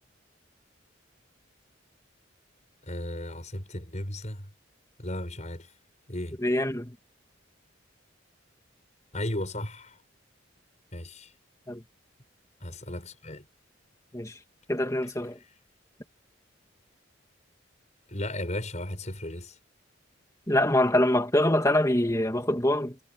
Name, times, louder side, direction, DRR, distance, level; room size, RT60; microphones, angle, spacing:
voice 1, 2.8-4.5 5.0-5.7 6.1-6.4 9.1-10.0 10.9-11.3 12.6-13.5 18.1-19.6, left 1 dB, 35° left, 7.3 m, -35 dB
voice 2, 6.4-7.0 11.7-11.8 14.1-14.4 14.7-15.4 20.5-23.0, left 1 dB, 15° left, 2.5 m, -24 dB
head